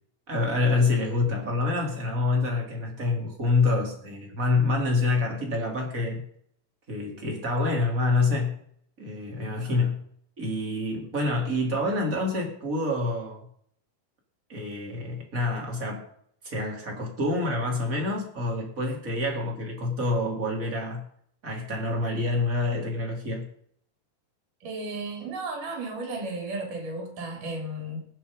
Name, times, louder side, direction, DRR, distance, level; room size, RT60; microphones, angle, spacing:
voice 1, 0.3-6.2 6.9-8.6 9.0-10.0 10.4-13.4 14.5-16.1 16.4-21.0 21.4-23.5, left 2 dB, 25° right, 0 dB, 3.8 m, -27 dB
voice 2, 24.6-28.1, right 2 dB, 80° right, 2 dB, 5.1 m, -34 dB
20.0 x 7.3 x 5.4 m, 0.64 s
omnidirectional pair, 3.7 m